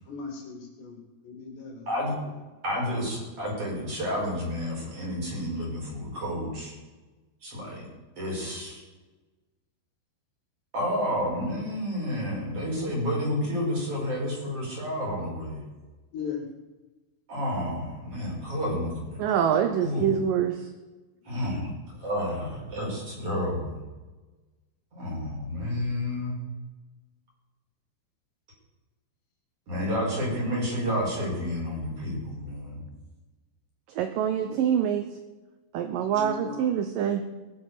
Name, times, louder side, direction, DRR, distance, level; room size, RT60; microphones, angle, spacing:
voice 1, 0.1-1.9 16.1-16.4 21.2-21.6 34.4-34.6 36.0-36.7, left 5 dB, 75° left, 1 dB, 4.8 m, -38 dB
voice 2, 2.6-6.7 7.4-7.8 8.2-8.8 10.7-15.6 17.3-19.2 19.8-20.1 21.3-21.7 22.0-23.8 24.9-26.4 29.7-32.8, equal, 35° right, -4 dB, 6.1 m, -30 dB
voice 3, 19.2-20.7 34.0-35.1 35.7-37.2, right 8 dB, 80° right, 8 dB, 2.0 m, -25 dB
19.5 x 7.7 x 6.7 m, 1.2 s
omnidirectional pair, 5.0 m